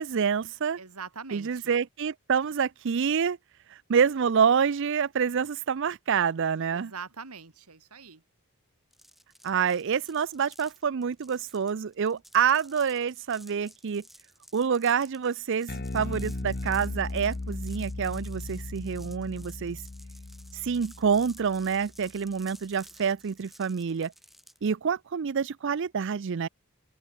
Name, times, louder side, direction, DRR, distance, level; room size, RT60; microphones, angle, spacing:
voice 1, 0.0-0.8 1.3-3.4 3.7-6.9 9.4-14.0 14.5-19.8 20.5-24.1 24.6-26.5, right 6 dB, 55° right, 0.4 m, -27 dB
voice 2, 0.8-1.7 6.7-8.2, right 5 dB, 90° right, 2.6 m, -43 dB
sound 1, 8.9-24.7, equal, ahead, 2.1 m, -54 dB
Bass guitar, 15.7-22.1, left 2 dB, 45° left, 0.9 m, -37 dB
head